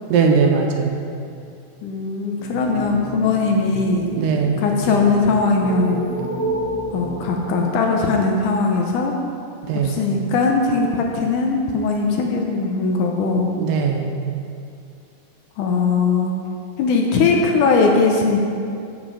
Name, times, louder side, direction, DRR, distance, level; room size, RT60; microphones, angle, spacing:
voice 1, 0.1-1.0 4.2-4.6 9.7-10.0 13.6-14.2, right 5 dB, 80° right, 2 dB, 2.4 m, -19 dB
voice 2, 1.8-4.1 4.6-6.0 6.9-9.2 9.8-13.5 15.6-16.3 16.8-18.4, left 4 dB, 75° left, 1 dB, 2.0 m, -19 dB
sound 1, 2.4-8.3, right 2 dB, 55° right, 2.3 m, -30 dB
7.8 x 7.3 x 4.9 m, 2.5 s
omnidirectional pair, 4.0 m